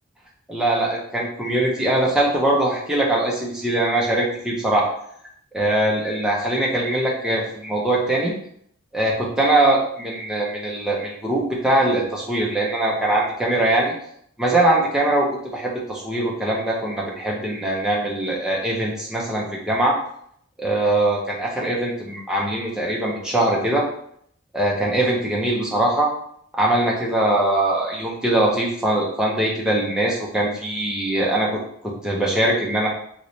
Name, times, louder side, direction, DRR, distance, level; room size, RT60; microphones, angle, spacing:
voice 1, 0.5-4.9 5.5-8.3 8.9-13.9 14.4-15.3 15.5-19.9 20.6-23.8 24.5-26.1 26.5-32.9, right 1 dB, 5° right, -4 dB, 0.6 m, -22 dB
3.1 x 3.0 x 2.7 m, 0.67 s
head